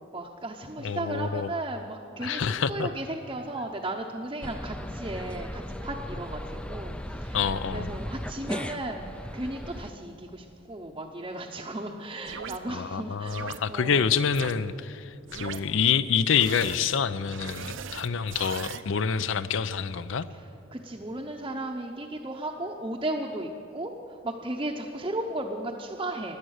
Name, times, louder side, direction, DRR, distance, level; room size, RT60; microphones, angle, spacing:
voice 1, 0.0-14.1 20.3-26.4, right 1 dB, 20° right, 0 dB, 0.7 m, -35 dB
voice 2, 0.8-1.5 2.2-2.9 7.3-8.0 12.7-20.3, left 6 dB, 65° left, 15 dB, 0.5 m, -27 dB
sound 1, 4.4-9.9, equal, 5° left, 0.3 m, -37 dB
sound 2, 12.3-12.6 13.3-13.6 14.3-14.5 15.3-15.6 16.3-16.8 17.3-18.8, right 7 dB, 65° right, 0.6 m, -39 dB
17.0 x 11.0 x 6.4 m, 2.8 s
head